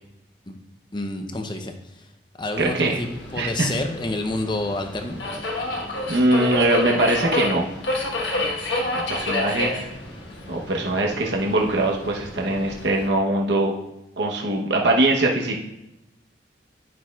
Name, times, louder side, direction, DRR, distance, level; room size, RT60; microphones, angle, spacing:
voice 1, 0.9-2.0 2.4-5.2, left 2 dB, 25° left, 5 dB, 0.7 m, -29 dB
Subway metro underground, 2.5-13.1, left 2 dB, 85° left, 1.3 m, -29 dB
voice 2, 2.6-3.0 3.4-3.7 6.1-7.7 9.1-9.7 10.5-13.7 14.2-15.6, right 2 dB, 70° right, 0 dB, 0.9 m, -22 dB
11.0 x 5.9 x 2.4 m, 0.91 s
head